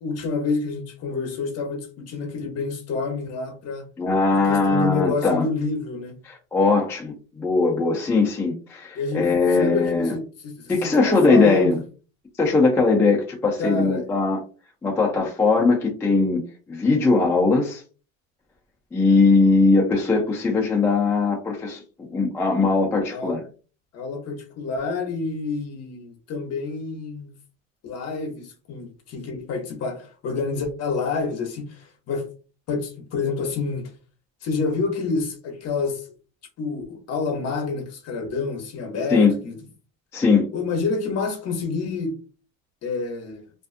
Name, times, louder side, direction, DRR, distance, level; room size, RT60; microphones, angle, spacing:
voice 1, 0.0-3.8 4.3-6.2 8.9-11.8 13.6-14.1 23.1-23.4 23.9-27.3 27.8-32.3 32.7-33.9 34.4-36.1 36.6-39.6 40.5-42.1 42.8-43.5, left 4 dB, 40° left, 0.8 m, -28 dB
voice 2, 4.0-5.5 6.5-10.2 10.7-11.8 12.4-14.4 14.8-17.8 18.9-23.4 39.1-39.4 40.1-40.5, left 3 dB, 5° left, 0.3 m, -20 dB
2.5 x 2.4 x 2.4 m
supercardioid pair, 125°, 39 cm